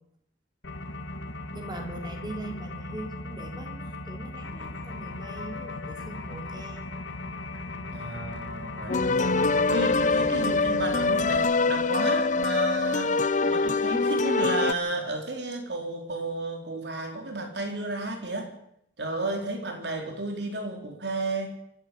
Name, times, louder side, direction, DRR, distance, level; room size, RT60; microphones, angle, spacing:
sound 1, 0.6-11.4, left 2 dB, 90° left, 2.2 m, -38 dB
voice 1, 1.5-6.9 10.1-10.4 19.2-19.5, right 2 dB, 25° right, 4 dB, 3.6 m, -41 dB
voice 2, 7.9-9.5 9.7-18.5 19.0-21.5, right 2 dB, 70° right, 4 dB, 4.3 m, -33 dB
sound 2, 8.9-14.7, left 3 dB, 45° left, 0.7 m, -24 dB
26.5 x 12.0 x 8.7 m, 0.76 s
head